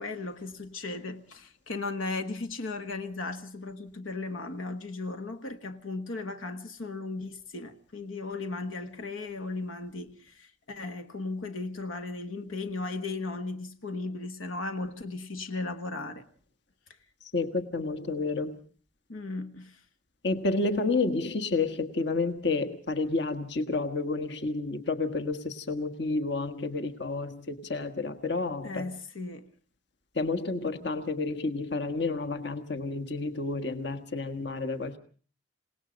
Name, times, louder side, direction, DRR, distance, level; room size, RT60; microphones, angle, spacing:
voice 1, 0.0-16.2 19.1-19.8 28.6-29.5, left 3 dB, 80° left, 1.4 m, -36 dB
voice 2, 17.3-18.6 20.2-28.9 30.1-35.0, left 3 dB, 55° left, 1.5 m, -30 dB
27.5 x 18.5 x 5.2 m
head